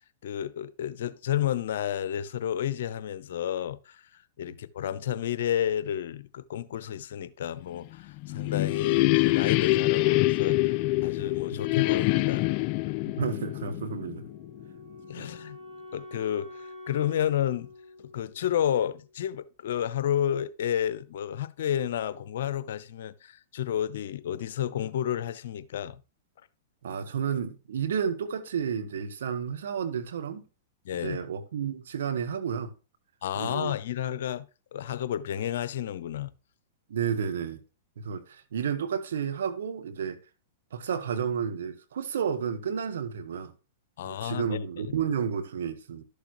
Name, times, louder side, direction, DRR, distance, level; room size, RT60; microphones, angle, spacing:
voice 1, 0.2-12.5 15.1-15.6 15.9-17.7 18.1-26.0 30.8-31.2 33.2-34.5 34.7-36.3 44.0-45.0, left 10 dB, 70° left, 0.7 m, -31 dB
sound 1, 7.9-14.6, left 20 dB, 45° left, 0.3 m, -25 dB
voice 2, 13.2-14.3 15.2-15.3 26.8-30.4 30.9-32.7 33.3-33.7 36.9-37.6 38.0-40.2 40.7-43.5 44.0-46.0, right 7 dB, 75° right, 1.3 m, -31 dB
Wind instrument woodwind instrument, 14.2-19.2, left 2 dB, 20° right, 3.9 m, -47 dB
12.0 x 6.7 x 3.0 m
hypercardioid pair, 120°, 0 cm